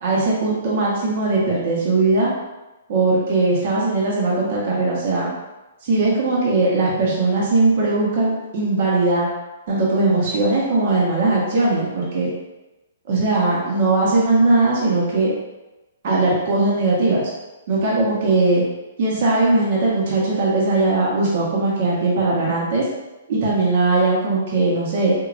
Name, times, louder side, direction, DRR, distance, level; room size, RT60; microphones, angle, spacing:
voice 1, 0.0-2.3 2.9-5.3 5.8-9.3 9.7-12.3 13.1-15.3 16.0-17.3 17.7-18.6 19.0-22.9 23.3-25.1, right 2 dB, 55° right, -5 dB, 1.2 m, -19 dB
4.7 x 2.8 x 2.6 m, 1.1 s
hypercardioid pair, 150°, 0 cm